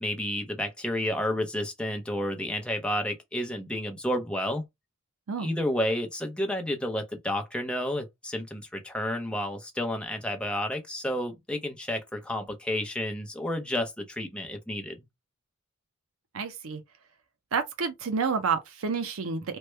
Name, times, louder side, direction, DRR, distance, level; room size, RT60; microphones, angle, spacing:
voice 1, 0.0-4.6 5.4-15.0, left 1 dB, 5° left, 0.6 m, -31 dB
voice 2, 16.3-16.8 17.5-19.6, right 5 dB, 80° right, 0.6 m, -29 dB
3.1 x 2.1 x 3.2 m
head